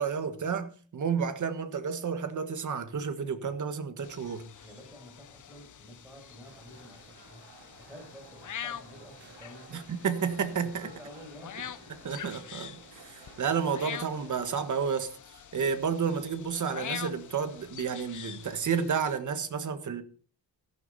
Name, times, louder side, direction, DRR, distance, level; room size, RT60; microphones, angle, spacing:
voice 1, 0.0-4.5 9.7-10.8 12.0-15.1 15.5-20.0, right 6 dB, 40° right, 1.5 m, -31 dB
sound 1, 4.0-19.2, left 9 dB, 45° left, 0.8 m, -45 dB
voice 2, 4.6-9.9 10.6-12.1, equal, 5° right, 5.9 m, -50 dB
sound 2, 6.4-14.3, right 5 dB, 60° right, 3.6 m, -55 dB
14.5 x 12.0 x 4.1 m
wide cardioid pair, 175°, 44 cm